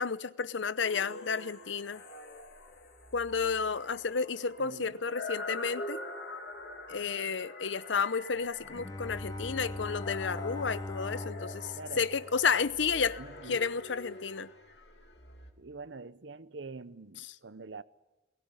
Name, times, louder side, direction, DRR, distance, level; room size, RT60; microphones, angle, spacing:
voice 1, 0.0-2.0 3.1-6.0 6.9-11.7 12.0-13.2 13.5-14.5, left 5 dB, 90° left, 0.8 m, -31 dB
sound 1, 0.8-15.5, left 2 dB, 65° left, 2.9 m, -45 dB
voice 2, 4.6-5.0 11.7-12.1 13.2-13.7 15.6-17.8, right 4 dB, 85° right, 0.8 m, -45 dB
Bowed string instrument, 8.6-13.1, left 1 dB, 20° left, 0.8 m, -41 dB
22.0 x 18.0 x 9.9 m
head